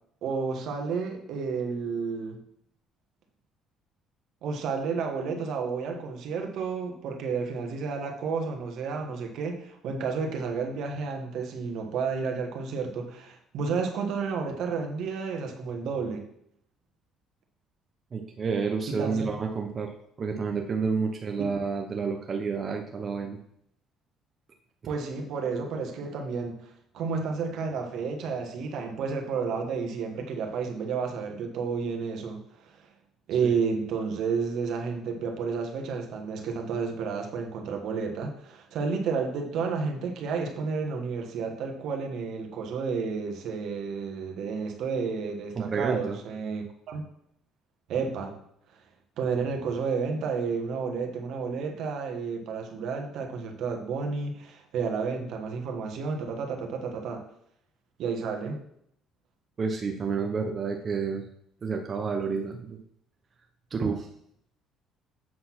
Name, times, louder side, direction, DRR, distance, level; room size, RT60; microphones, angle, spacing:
voice 1, 0.2-2.4 4.4-16.2 18.9-19.3 21.4-21.5 24.9-26.6 26.9-32.4 32.7-32.8 33.3-47.0 47.9-48.4 49.2-57.2 58.0-58.6, right 5 dB, 65° right, 4 dB, 1.4 m, -31 dB
voice 2, 18.1-19.9 20.2-23.4 45.6-46.2 59.6-61.3 61.6-62.8 63.7-64.1, right 5 dB, 35° right, 2 dB, 0.8 m, -29 dB
7.6 x 4.2 x 5.9 m, 0.72 s
cardioid pair, 120°, 0 cm